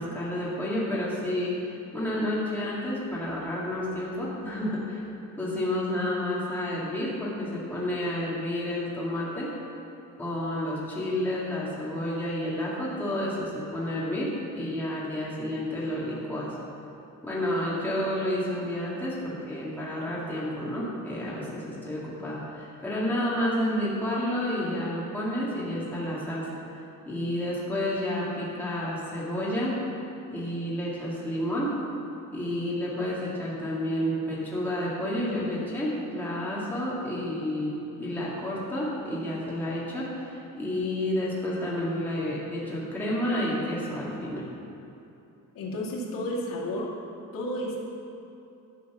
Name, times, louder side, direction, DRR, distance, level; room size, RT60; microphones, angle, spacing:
voice 1, 0.0-1.5 1.9-5.0 5.4-9.5 10.2-16.6 17.2-26.5 27.1-29.7 30.3-31.7 32.3-44.4, left 1 dB, 5° left, -7 dB, 2.1 m, -30 dB
voice 2, 45.5-46.9 47.3-47.8, left 1 dB, 80° left, -5 dB, 2.4 m, -31 dB
12.0 x 7.2 x 5.9 m, 2.8 s
cardioid pair, 175°, 33 cm